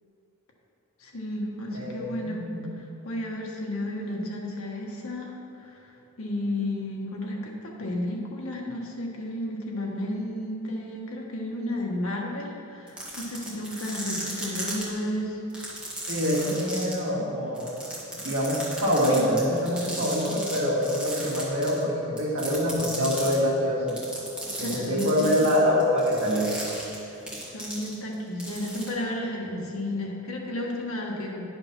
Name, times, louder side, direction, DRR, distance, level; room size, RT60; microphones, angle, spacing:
voice 1, 1.0-2.5 2.8-15.4 17.1-17.2 24.6-25.3 27.1-31.4, left 1 dB, 75° left, -1 dB, 1.4 m, -33 dB
voice 2, 1.7-2.6 16.1-17.7 18.2-24.0 24.6-26.6, equal, 65° right, -4 dB, 2.0 m, -25 dB
sound 1, 12.9-14.8 15.5-16.9 17.6-20.6 20.8-21.8 22.2-23.3 23.9-28.1 28.4-28.9, right 1 dB, 5° right, 1.9 m, -35 dB
10.0 x 5.2 x 5.9 m, 2.9 s
head